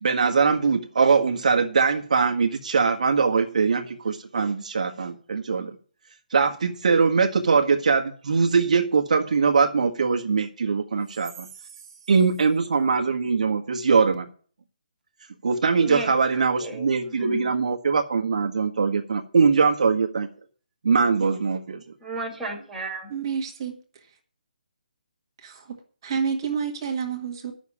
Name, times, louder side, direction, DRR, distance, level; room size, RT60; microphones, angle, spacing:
voice 1, 0.0-5.7 6.3-11.5 12.1-14.3 15.4-20.3 20.8-21.8, right 5 dB, 55° right, 1.4 m, -22 dB
voice 2, 15.8-17.5 22.0-23.1, right 2 dB, ahead, 2.3 m, -35 dB
voice 3, 23.1-23.8 25.4-25.8 26.0-27.5, right 6 dB, 30° right, 1.7 m, -29 dB
10.5 x 6.4 x 8.4 m
hypercardioid pair, 170°, 5 cm